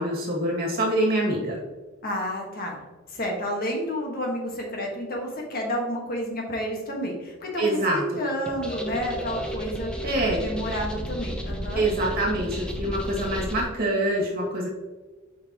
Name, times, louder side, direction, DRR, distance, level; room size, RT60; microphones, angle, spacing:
voice 1, 0.0-1.6 7.6-8.0 10.0-10.4 11.8-14.7, right 1 dB, 50° right, -3 dB, 2.1 m, -25 dB
voice 2, 2.0-2.8 3.1-9.9 10.4-11.8, equal, 45° left, 0 dB, 1.5 m, -30 dB
sound 1, 8.5-13.6, equal, 5° left, 0.7 m, -33 dB
7.7 x 5.2 x 2.9 m, 1.3 s
head